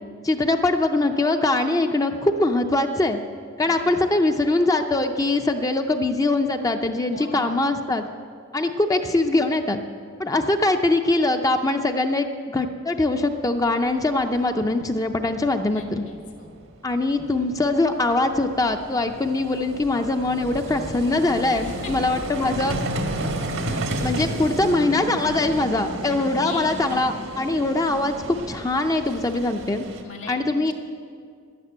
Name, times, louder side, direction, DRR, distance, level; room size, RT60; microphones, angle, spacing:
voice 1, 0.2-3.2 3.6-8.1 8.5-9.8 10.2-16.0 16.8-22.8 24.0-29.8 30.3-30.7, left 2 dB, 20° left, 6 dB, 0.5 m, -22 dB
voice 2, 3.7-4.0 7.1-7.6 15.7-16.6 21.6-21.9 26.1-26.2 26.4-26.8 30.0-30.7, left 3 dB, 70° left, 2 dB, 2.2 m, -39 dB
Vehicle, 13.9-14.0 14.2-14.4 16.4-16.5 16.6-30.0, right 1 dB, 85° right, 1.5 m, -32 dB
11.0 x 11.0 x 8.0 m, 2.2 s
head